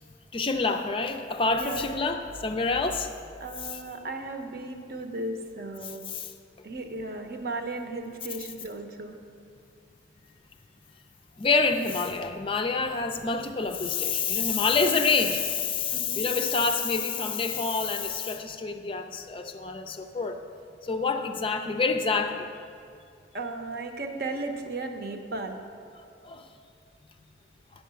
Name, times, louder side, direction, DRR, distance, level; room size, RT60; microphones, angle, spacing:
voice 1, 0.3-3.1 3.7-3.8 6.1-6.3 11.4-20.4 20.8-22.5 26.2-26.5, left 4 dB, 30° left, 6 dB, 0.4 m, -27 dB
voice 2, 1.5-1.9 3.4-6.0 6.6-9.2 15.9-16.3 23.3-25.6, right 2 dB, 50° right, 5 dB, 0.8 m, -35 dB
9.1 x 5.6 x 6.9 m, 2.4 s
head